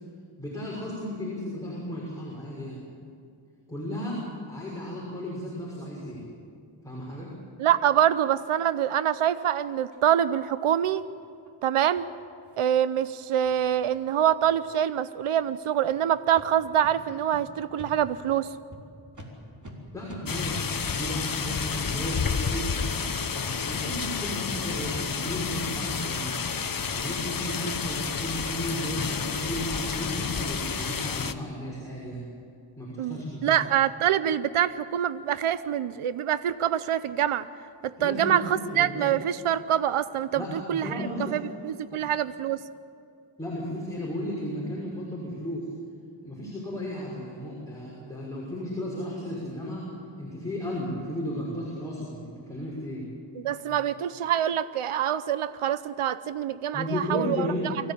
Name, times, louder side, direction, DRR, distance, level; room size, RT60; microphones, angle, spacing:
voice 1, 0.4-2.8 3.7-4.2 4.5-6.2 6.8-7.3 19.9-22.8 23.3-26.4 26.9-32.2 32.8-33.6 38.0-39.1 40.3-41.3 41.9-42.1 43.4-45.7 46.2-49.8 50.2-53.1 53.6-53.8 56.7-57.8, equal, 5° left, -6 dB, 6.0 m, -34 dB
voice 2, 7.6-11.0 11.6-12.1 12.6-18.5 33.0-37.5 37.8-40.4 40.7-40.9 41.3-42.6 53.4-57.5, right 10 dB, 80° right, 14 dB, 0.8 m, -25 dB
sound 1, 9.9-10.0 10.5-10.6 10.9-11.1 11.4-11.5 11.9-12.0 12.4-12.6 12.9-13.0 13.4-13.5 13.9-14.0 14.4-14.7 15.3-15.5 15.8-16.0 16.3-16.5 16.8-16.9 17.3-17.4 17.8-17.9 18.2-18.4 18.7-18.8 19.1-19.3 19.6-19.7 20.1-20.2, equal, 35° right, 3.9 m, -47 dB
sound 2, 20.3-31.3, left 6 dB, 40° left, 1.0 m, -30 dB
24.5 x 16.0 x 8.6 m, 2.4 s
wide cardioid pair, 95°, 50 cm